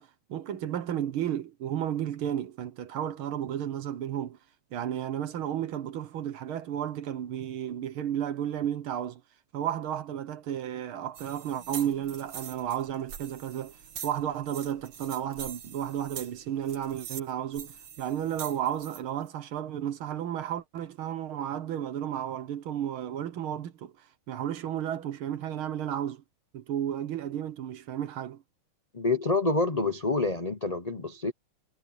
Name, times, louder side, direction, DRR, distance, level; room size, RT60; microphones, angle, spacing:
voice 1, 0.0-4.4 4.7-9.2 9.5-13.8 14.0-23.9 24.3-26.2 26.5-28.4, right 10 dB, 70° right, 2.0 m, -33 dB
sound 1, 11.1-19.0, right 8 dB, 90° right, 2.5 m, -44 dB
voice 2, 28.9-31.3, left 3 dB, 40° left, 0.5 m, -27 dB
omnidirectional pair, 2.4 m